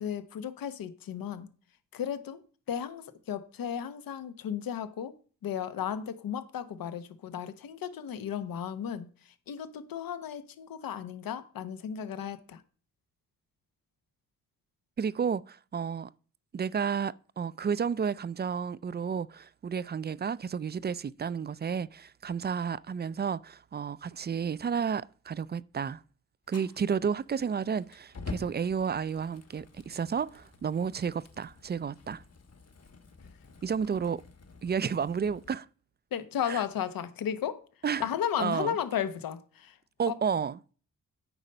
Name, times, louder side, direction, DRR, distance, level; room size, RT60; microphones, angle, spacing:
voice 1, 0.0-1.5 1.9-2.4 2.7-5.1 5.4-12.6 36.1-37.6 38.0-39.8 40.1-40.2, left 9 dB, 80° left, 1.0 m, -34 dB
voice 2, 15.0-16.1 16.5-26.0 26.5-32.2 33.6-34.2 34.6-35.7 36.5-36.6 37.8-38.1 38.4-38.8 40.0-40.6, right 6 dB, 30° right, 0.4 m, -31 dB
Fire, 26.5-35.5, left 4 dB, 45° left, 1.4 m, -48 dB
8.9 x 4.1 x 5.5 m
supercardioid pair, 55°, 34 cm